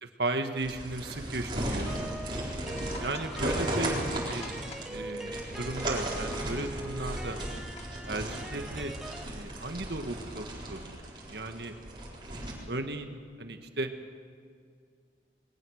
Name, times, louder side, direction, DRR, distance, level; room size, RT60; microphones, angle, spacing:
voice 1, 0.0-2.0 2.6-4.5 4.9-7.4 8.0-8.9 9.2-11.7 12.7-13.9, right 2 dB, 65° right, 6 dB, 1.6 m, -36 dB
sound 1, 0.6-12.5, right 1 dB, 25° right, 4.3 m, -36 dB
sound 2, 1.9-9.2, right 1 dB, ahead, 0.4 m, -42 dB
sound 3, 2.7-8.0, left 3 dB, 35° left, 2.1 m, -49 dB
21.5 x 19.0 x 6.5 m, 2.1 s
head